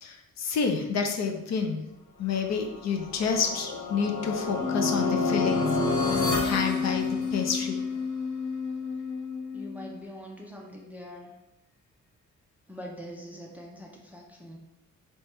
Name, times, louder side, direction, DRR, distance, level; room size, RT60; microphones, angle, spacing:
voice 1, 0.0-1.8 2.2-5.6 6.4-7.8, left 6 dB, 60° left, 3 dB, 0.6 m, -29 dB
sound 1, 2.5-7.7, left 2 dB, 85° left, 1.2 m, -30 dB
Wind instrument woodwind instrument, 4.6-10.0, left 5 dB, 20° left, 0.8 m, -31 dB
voice 2, 9.5-11.3 12.7-14.6, equal, 5° right, -1 dB, 0.4 m, -43 dB
3.4 x 3.0 x 4.3 m, 0.89 s
wide cardioid pair, 180°, 31 cm